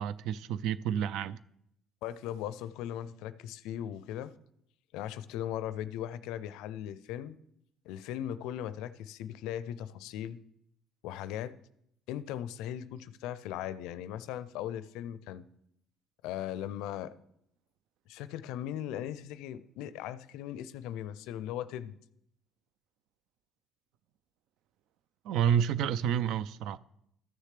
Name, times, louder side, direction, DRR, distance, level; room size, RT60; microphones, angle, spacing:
voice 1, 0.0-1.4 25.2-26.8, right 9 dB, 70° right, 0.3 m, -29 dB
voice 2, 2.0-4.3 4.9-7.4 7.8-10.4 11.0-11.5 12.1-15.4 16.2-17.1 18.1-22.0, left 11 dB, 75° left, 0.4 m, -38 dB
14.0 x 6.6 x 3.3 m
hypercardioid pair, 65°, 0 cm